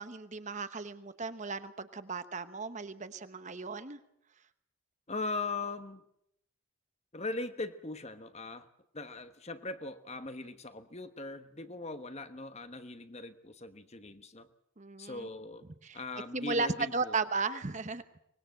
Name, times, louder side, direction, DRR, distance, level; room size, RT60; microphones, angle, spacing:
voice 1, 0.0-4.0 14.8-15.3 15.8-16.0 16.3-18.0, right 4 dB, 35° right, 11 dB, 1.0 m, -35 dB
voice 2, 5.1-6.0 7.1-8.7 8.9-14.5 15.0-15.6 15.9-17.1, left 3 dB, 30° left, 10 dB, 1.2 m, -40 dB
24.5 x 21.0 x 7.8 m, 0.76 s
head